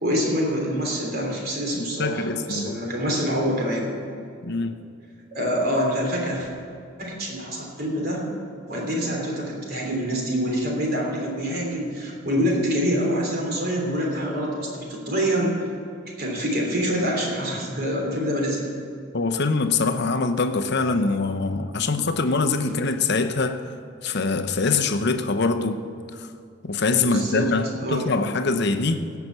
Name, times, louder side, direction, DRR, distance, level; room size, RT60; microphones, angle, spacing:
voice 1, 0.0-3.9 5.3-6.5 7.0-8.2 8.7-15.7 16.2-18.6 27.0-27.5 27.8-28.1, equal, 50° right, 3.2 m, -26 dB
voice 2, 1.8-2.8 4.4-4.8 19.1-23.6 24.0-25.8 26.2-26.3 26.6-29.1, left 3 dB, 55° left, 0.8 m, -24 dB
17.0 x 5.9 x 8.0 m
head